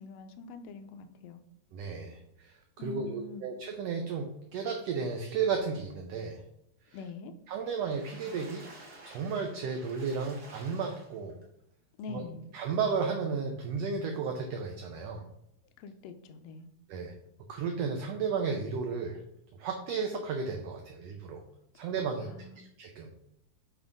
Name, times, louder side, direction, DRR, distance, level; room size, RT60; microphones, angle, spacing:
voice 1, 0.0-1.4 2.8-3.5 6.9-7.3 12.0-12.5 15.8-16.7 22.2-22.7, left 4 dB, 85° left, 8 dB, 1.4 m, -44 dB
voice 2, 1.7-6.4 6.9-7.0 7.5-8.6 9.0-11.4 12.1-12.2 12.5-15.2 16.9-17.1 17.5-19.2 19.6-21.4 21.7-22.3 22.8-23.1, right 5 dB, 75° right, 3 dB, 1.5 m, -33 dB
Water / Splash splatter, 7.6-11.4 12.0-12.1 12.4-12.5, right 2 dB, 50° right, 2.6 m, -51 dB
7.2 x 3.4 x 5.1 m, 0.79 s
omnidirectional pair, 3.6 m